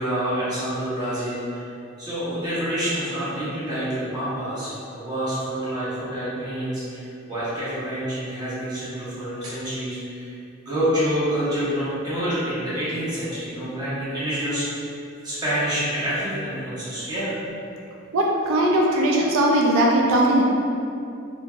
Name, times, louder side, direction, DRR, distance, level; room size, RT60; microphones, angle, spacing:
voice 1, 0.0-1.7 2.0-10.4 10.6-14.9 15.2-17.4, equal, 20° right, -11 dB, 0.9 m, -27 dB
voice 2, 18.1-20.4, right 1 dB, 90° right, -2 dB, 0.4 m, -19 dB
3.1 x 2.2 x 2.4 m, 2.6 s
head